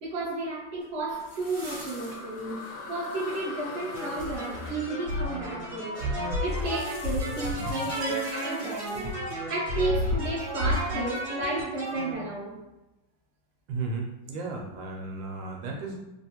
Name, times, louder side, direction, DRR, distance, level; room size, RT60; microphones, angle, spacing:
voice 1, 0.0-6.1 6.4-12.6, right 2 dB, 55° right, -5 dB, 0.7 m, -33 dB
sound 1, 0.8-4.8 6.5-9.4, right 1 dB, 20° right, 0.5 m, -48 dB
sound 2, 1.1-8.3, left 3 dB, 75° left, 1.4 m, -43 dB
sound 3, 3.9-12.1, equal, 40° right, 1.2 m, -31 dB
voice 2, 13.7-16.0, right 3 dB, 75° right, 0 dB, 1.2 m, -34 dB
3.4 x 2.5 x 2.8 m, 0.99 s
omnidirectional pair, 2.2 m